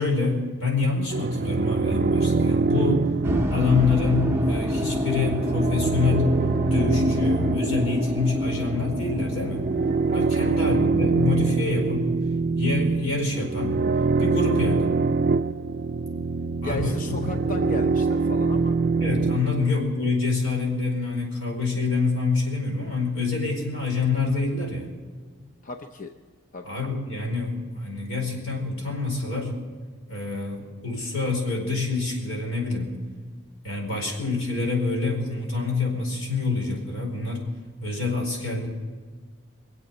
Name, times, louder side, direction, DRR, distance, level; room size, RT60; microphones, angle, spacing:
voice 1, 0.0-3.1 3.5-6.3 6.7-9.6 10.1-12.1 12.6-13.8 14.2-14.9 16.6-17.3 19.0-24.9 26.6-29.5 30.1-32.9 33.6-37.5 37.8-38.7, left 3 dB, 85° left, 1 dB, 4.8 m, -26 dB
sound 1, 1.1-19.7, right 4 dB, 45° right, 0.4 m, -25 dB
sound 2, 3.2-12.2, equal, 10° right, 0.7 m, -28 dB
voice 2, 16.6-18.8 19.6-19.8 25.6-26.1 26.5-26.7, left 3 dB, 40° left, 4 dB, 0.7 m, -35 dB
24.0 x 8.1 x 7.3 m, 1.5 s
head